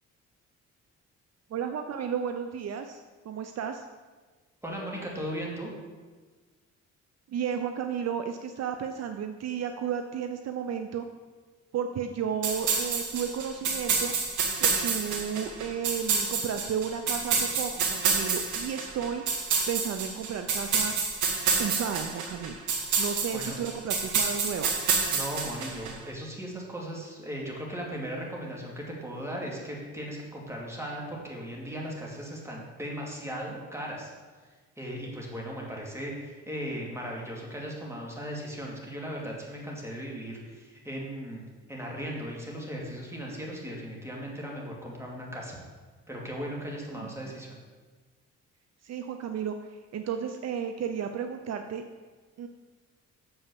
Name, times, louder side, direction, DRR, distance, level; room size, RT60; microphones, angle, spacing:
voice 1, 1.5-3.0 3.2-3.9 7.3-11.1 11.7-14.1 14.6-19.2 19.7-20.9 21.6-22.6 23.0-24.7 47.0-47.3 48.8-51.8 52.4-52.5, right 7 dB, 60° right, 7 dB, 0.6 m, -33 dB
voice 2, 4.6-5.7 23.3-23.6 25.1-34.1 34.8-41.4 41.7-45.6 46.1-47.6, equal, 10° right, -2 dB, 2.5 m, -37 dB
sound 1, 12.4-25.9, right 5 dB, 80° right, 1.5 m, -28 dB
7.0 x 5.6 x 6.9 m, 1.4 s
cardioid pair, 90°, 30 cm